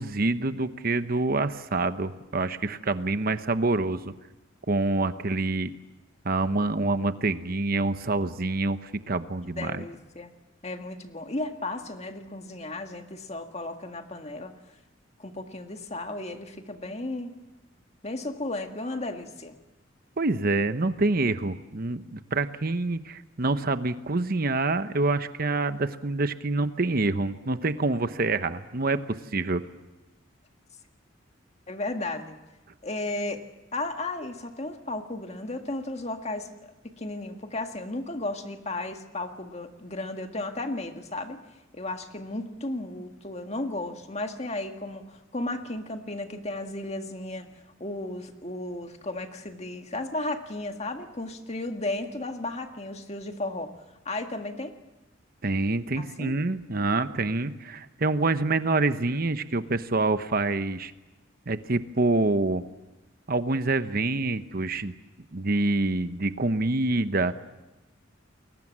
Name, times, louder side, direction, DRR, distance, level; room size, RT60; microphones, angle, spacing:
voice 1, 0.0-4.1 4.7-5.7 6.2-9.8 20.2-29.6 55.4-60.9 61.5-62.6 63.3-64.9 65.3-67.3, right 2 dB, 50° right, 11 dB, 1.0 m, -26 dB
voice 2, 9.6-10.3 10.6-14.5 15.2-17.3 18.0-19.6 31.7-32.4 32.8-33.4 33.7-41.4 41.7-47.5 47.8-53.7 54.1-54.8 56.0-56.4, left 2 dB, 35° left, 5 dB, 1.8 m, -34 dB
29.5 x 22.0 x 7.4 m, 1.0 s
head